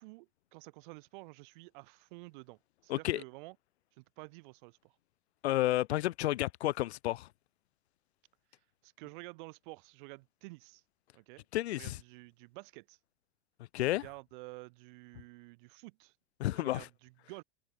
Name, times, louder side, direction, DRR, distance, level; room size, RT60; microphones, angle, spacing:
voice 1, 0.0-3.6 4.0-4.9 8.8-10.8 11.1-11.4 11.8-13.0 13.8-16.1 16.5-17.4, right 25 dB, 40° right, 6.0 m, -51 dB
voice 2, 2.9-3.2 5.4-7.3 11.5-12.0 13.7-14.0 16.4-16.9, left 15 dB, 60° left, 1.5 m, -31 dB
open air
supercardioid pair, 175°, 36 cm